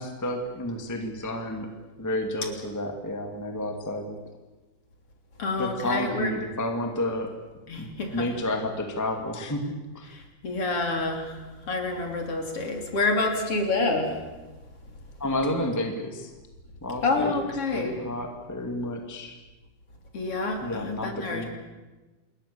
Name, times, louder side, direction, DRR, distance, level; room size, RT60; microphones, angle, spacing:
voice 1, 0.0-1.7 2.0-4.2 5.6-7.3 7.8-10.1 15.2-16.3 16.8-17.3 17.7-19.3 20.6-21.5, left 1 dB, 5° left, 4 dB, 2.0 m, -31 dB
voice 2, 5.4-6.3 7.7-8.3 10.1-11.4 11.7-14.1 17.0-18.0 20.1-21.5, left 3 dB, 45° left, 3 dB, 3.9 m, -28 dB
28.0 x 21.5 x 7.0 m, 1.2 s
omnidirectional pair, 3.6 m